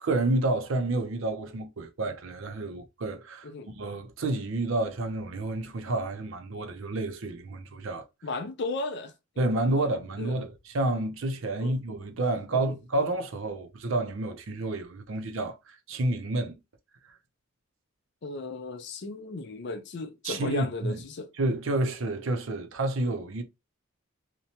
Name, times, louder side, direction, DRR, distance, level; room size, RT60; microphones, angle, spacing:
voice 1, 0.0-3.5 3.7-8.0 9.4-16.6 17.0-17.1 20.2-21.0 21.4-23.4, right 2 dB, 65° right, 0.5 m, -29 dB
voice 2, 8.2-9.1 9.8-9.9 10.2-10.4 11.6-11.7 12.5-12.7 18.2-21.3, left 3 dB, 50° left, 0.5 m, -35 dB
2.8 x 2.2 x 2.8 m
head